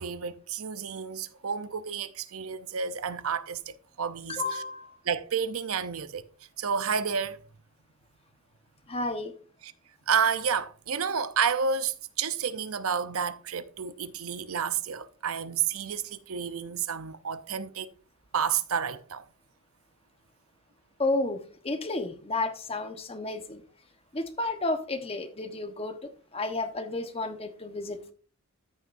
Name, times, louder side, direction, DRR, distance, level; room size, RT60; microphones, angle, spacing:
voice 1, 0.0-3.6 4.0-4.6 5.1-6.2 6.6-7.4 9.6-9.7 10.1-17.9 18.3-19.2, right 6 dB, 70° right, 0.7 m, -30 dB
voice 2, 4.3-5.0 8.9-9.3 21.0-23.6 24.1-26.0 26.3-28.1, left 2 dB, 25° left, 1.1 m, -32 dB
14.0 x 6.4 x 2.6 m
head